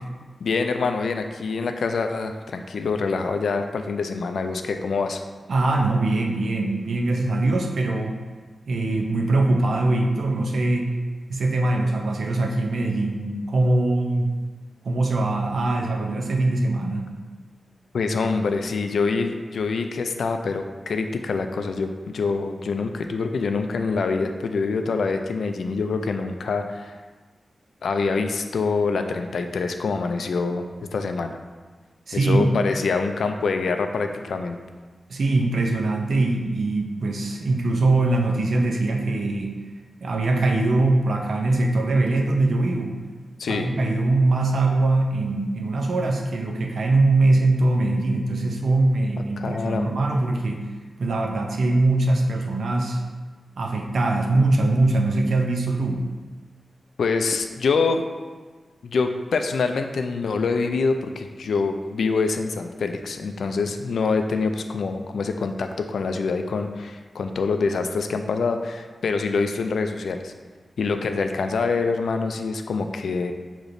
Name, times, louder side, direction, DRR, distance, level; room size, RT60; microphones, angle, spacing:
voice 1, 0.4-5.2 17.9-27.0 27.8-30.6 30.9-31.4 32.1-34.6 43.4-43.7 49.4-50.0 57.0-58.0 58.8-70.3 70.8-73.3, left 4 dB, 90° left, 6 dB, 0.3 m, -25 dB
voice 2, 5.5-8.1 8.7-10.9 11.3-14.3 14.8-17.1 32.1-32.5 35.1-39.5 40.0-43.0 43.5-50.6 51.0-53.0 53.6-56.0, right 2 dB, 65° right, 1 dB, 0.5 m, -22 dB
6.5 x 2.9 x 2.6 m, 1.4 s
wide cardioid pair, 175°, 0 cm